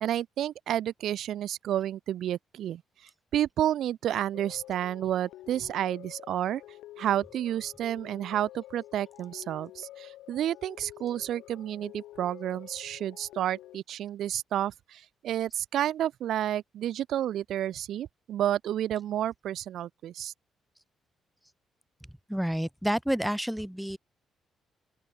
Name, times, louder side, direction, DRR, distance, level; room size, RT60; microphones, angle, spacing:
voice 1, 0.0-2.8 3.3-6.6 7.0-20.3, right 11 dB, 75° right, 1.1 m, -30 dB
sound 1, 4.3-13.8, left 15 dB, 90° left, 5.0 m, -49 dB
voice 2, 22.3-24.0, equal, ahead, 0.9 m, -29 dB
open air
cardioid pair, 90°, 0 cm